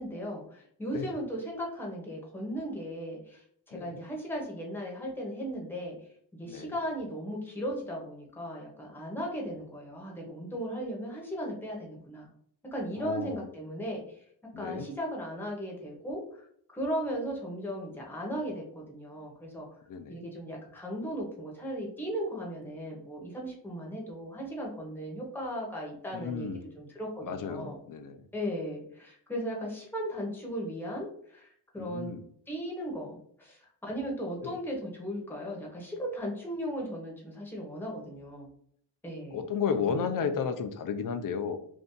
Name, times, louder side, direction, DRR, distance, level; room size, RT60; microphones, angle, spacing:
voice 1, 0.0-6.0 6.3-12.3 12.7-14.0 14.6-19.7 20.1-26.5 26.7-27.8 28.3-32.1 32.5-38.5 39.0-39.5 39.9-40.3, equal, 5° left, -2 dB, 0.8 m, -37 dB
voice 2, 3.7-4.0 6.4-6.7 13.0-13.4 14.5-14.9 19.9-20.2 26.1-26.6 27.2-28.2 31.8-32.2 34.4-34.6 39.3-41.6, left 6 dB, 55° left, 9 dB, 0.4 m, -33 dB
2.6 x 2.4 x 3.6 m, 0.64 s
wide cardioid pair, 140°, 40 cm